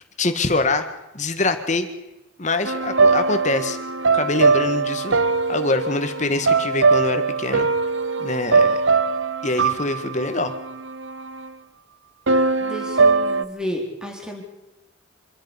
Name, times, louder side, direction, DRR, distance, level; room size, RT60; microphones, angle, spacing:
voice 1, 0.2-0.9 1.1-1.9 2.4-3.8 4.1-5.2 5.5-7.7 8.2-8.8 9.4-10.5, left 2 dB, 35° left, 8 dB, 1.8 m, -24 dB
sound 1, 2.7-11.5 12.3-13.4, right 4 dB, 75° right, 0.9 m, -21 dB
voice 2, 12.6-14.4, equal, 5° right, 1 dB, 3.7 m, -31 dB
26.0 x 10.0 x 10.0 m, 0.97 s
head